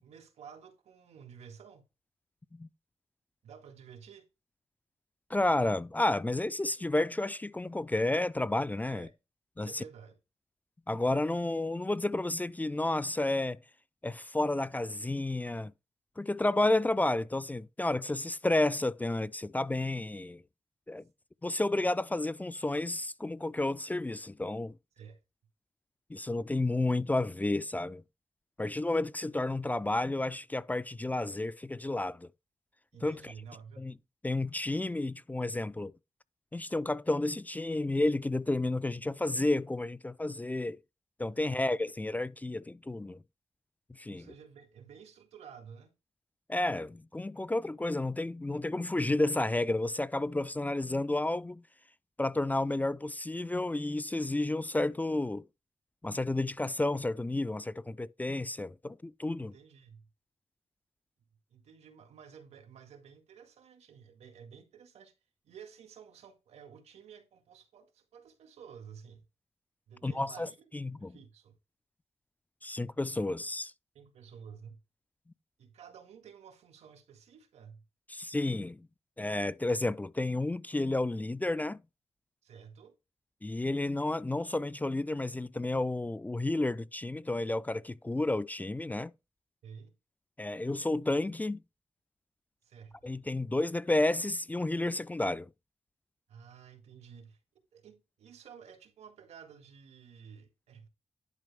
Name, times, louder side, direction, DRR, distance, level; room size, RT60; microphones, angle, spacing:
voice 1, 0.0-1.8 3.4-4.3 8.9-9.1 9.6-10.2 25.0-25.2 32.9-33.9 41.3-41.7 44.1-45.9 59.4-60.0 61.5-65.1 65.4-69.2 69.9-70.7 71.0-71.5 73.9-74.8 75.6-77.8 82.4-83.0 89.6-89.9 92.6-93.2 96.3-97.4 97.7-100.9, right 7 dB, 90° right, 2.0 m, -52 dB
voice 2, 5.3-9.1 9.6-9.7 10.9-13.6 14.0-15.7 16.2-20.4 20.9-21.0 21.4-24.7 26.1-28.0 28.6-32.3 33.0-33.3 33.8-33.9 34.2-35.9 36.5-40.8 41.2-43.2 44.0-44.3 46.5-51.6 52.2-55.4 56.0-59.5 70.0-71.2 72.6-73.7 78.1-78.9 79.2-81.8 83.4-89.1 90.4-91.6 93.0-95.5, left 2 dB, 15° left, 0.4 m, -31 dB
11.0 x 5.0 x 3.5 m
cardioid pair, 75°, 11 cm